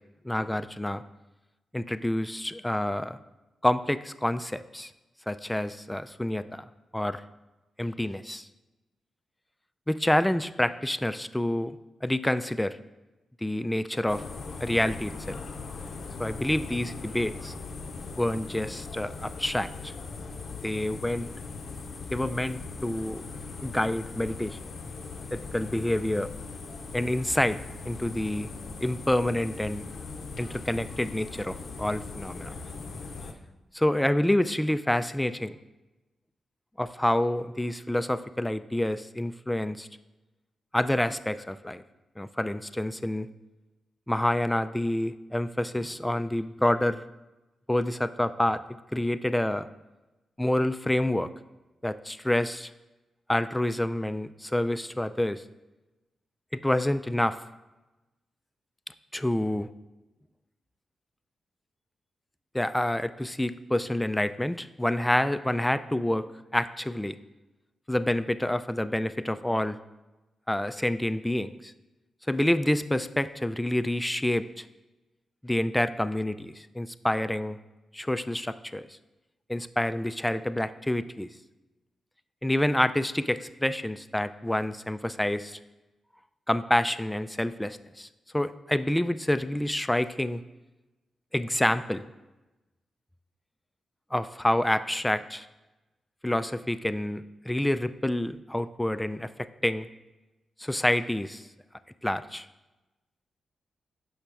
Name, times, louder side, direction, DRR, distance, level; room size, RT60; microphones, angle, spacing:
voice 1, 0.2-1.0 1.7-3.2 3.6-4.9 5.3-6.6 6.9-7.2 7.8-8.5 9.9-11.8 12.0-12.8 13.4-14.2 14.6-15.4 16.2-17.5 18.2-19.9 20.6-21.3 22.1-23.2 23.6-24.6 25.3-26.3 26.9-27.6 27.9-28.5 28.8-29.8 30.4-32.5 33.7-35.5 36.8-39.9 40.7-41.8 42.2-43.3 44.1-47.0 47.7-48.6 48.9-49.7 50.4-51.3 51.8-52.7 53.3-55.4 56.6-57.4 59.1-59.7 62.5-66.3 66.5-67.2 67.9-69.8 70.5-71.7 72.3-74.6 75.4-77.6 77.9-78.9 79.5-81.3 82.4-85.6 86.5-88.1 88.3-90.4 91.3-92.1 94.1-95.5 96.2-99.3 99.6-99.9 100.6-101.4 102.0-102.5, left 1 dB, 10° left, 12 dB, 0.3 m, -28 dB
sound 1, 14.1-33.3, left 4 dB, 65° left, 0.6 m, -40 dB
5.9 x 5.5 x 3.4 m, 1.0 s
supercardioid pair, 45°, 0 cm